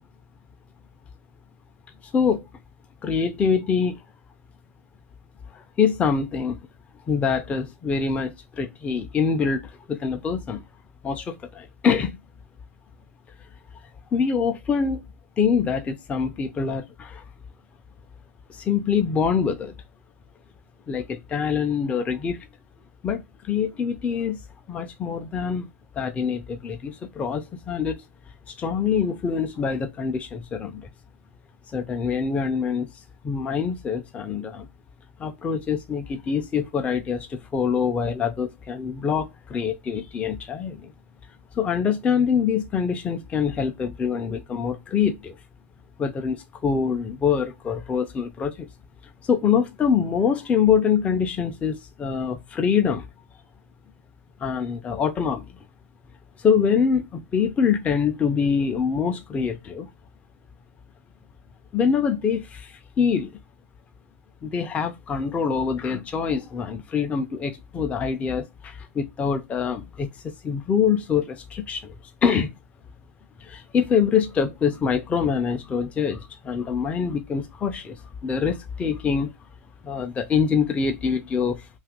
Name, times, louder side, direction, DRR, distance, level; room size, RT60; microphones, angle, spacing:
voice 1, 2.1-2.5 3.0-4.0 5.5-6.6 7.1-10.6 11.0-12.2 14.1-15.0 15.4-17.2 18.5-19.7 20.9-22.5 23.0-24.4 24.7-25.7 26.0-28.0 28.5-30.9 31.7-32.9 33.2-34.7 35.2-40.9 41.5-45.4 46.0-48.7 49.2-53.1 54.4-55.5 56.4-59.9 61.7-63.3 64.4-71.9 72.2-72.5 73.4-79.3 79.8-81.7, left 6 dB, 15° left, 0.4 m, -25 dB
2.6 x 2.4 x 3.6 m
hypercardioid pair, 125°, 8 cm